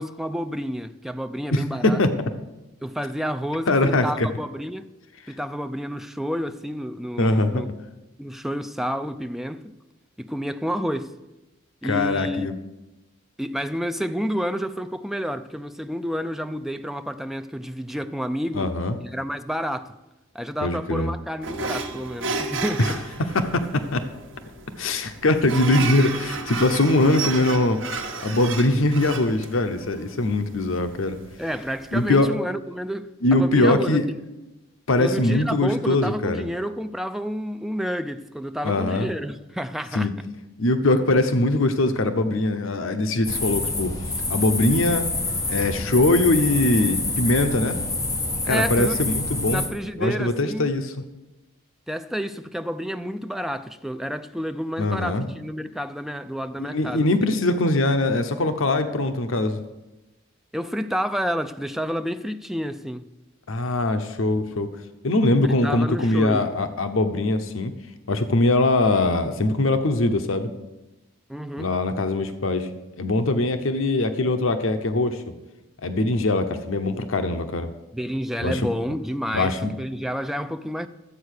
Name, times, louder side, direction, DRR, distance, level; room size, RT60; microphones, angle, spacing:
voice 1, 0.0-2.0 2.8-4.9 5.3-7.7 8.2-9.7 10.2-11.1 11.8-12.5 13.4-18.7 19.0-20.0 20.3-23.0 31.4-34.2 35.0-40.1 48.5-49.0 49.5-50.7 51.9-57.3 60.5-63.1 65.4-66.5 71.3-71.7 77.9-80.9, equal, ahead, 0.4 m, -30 dB
voice 2, 1.5-2.1 3.7-4.3 7.2-7.6 11.8-12.5 18.5-19.0 20.6-21.1 23.3-24.1 24.8-27.8 28.2-31.2 31.9-32.4 33.2-34.0 34.9-36.5 38.6-39.1 39.9-40.1 40.6-43.9 44.3-45.1 45.5-47.8 48.5-49.6 50.0-50.9 54.8-55.3 56.6-59.6 63.5-64.7 65.0-67.7 68.1-70.5 71.6-72.7 73.0-75.2 75.8-77.7 78.4-78.6 79.3-79.7, left 2 dB, 75° left, 0.8 m, -22 dB
sound 1, 21.4-32.3, right 4 dB, 65° right, 1.3 m, -33 dB
sound 2, 43.2-49.7, left 2 dB, 15° left, 1.3 m, -27 dB
12.5 x 8.1 x 6.5 m
head